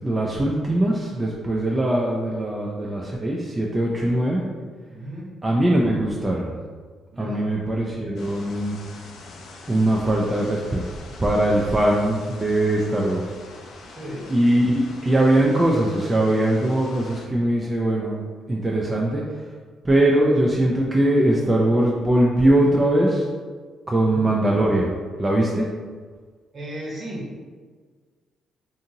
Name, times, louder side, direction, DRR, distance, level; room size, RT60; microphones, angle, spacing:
voice 1, 0.0-4.4 5.4-6.6 7.2-8.8 9.7-10.8 11.2-13.2 14.3-18.2 18.5-19.2 19.8-23.2 23.9-24.9 25.2-25.7, right 1 dB, 20° right, -3 dB, 0.3 m, -21 dB
voice 2, 4.9-5.3 7.1-7.5 14.0-14.3 23.9-24.3 26.5-27.4, equal, 50° right, -5 dB, 1.0 m, -35 dB
sound 1, 8.2-17.3, left 3 dB, 75° left, 0.4 m, -44 dB
2.6 x 2.5 x 2.7 m, 1.5 s
cardioid pair, 90°, 0 cm